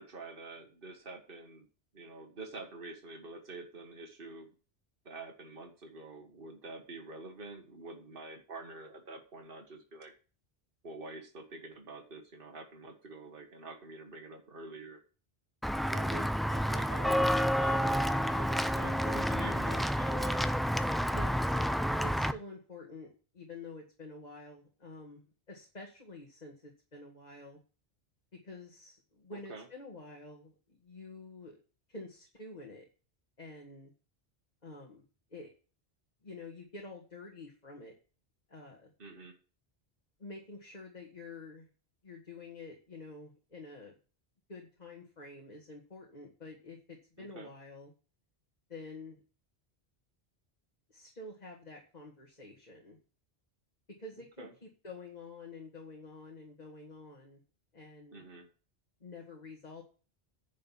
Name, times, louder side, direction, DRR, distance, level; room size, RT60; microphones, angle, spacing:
voice 1, 0.0-1.7 1.9-4.5 5.1-10.1 10.8-15.0 15.9-20.4 29.3-29.7 39.0-39.3 47.2-47.5 54.4-54.5 58.1-58.5, right 3 dB, 60° right, 2 dB, 2.0 m, -46 dB
Walk footsteps / Bell, 15.6-22.3, equal, ahead, 0.3 m, -29 dB
voice 2, 21.1-21.6 22.0-27.6 28.3-31.6 31.9-32.9 33.4-33.9 34.6-35.0 35.3-35.5 36.2-37.9 38.5-38.9 40.2-41.7 42.0-43.9 44.5-47.9 48.7-49.2 50.9-53.0 54.0-57.4 57.7-58.2 59.0-59.8, left 3 dB, 40° left, -1 dB, 2.1 m, -48 dB
10.5 x 5.4 x 7.4 m, 0.36 s
omnidirectional pair, 1.1 m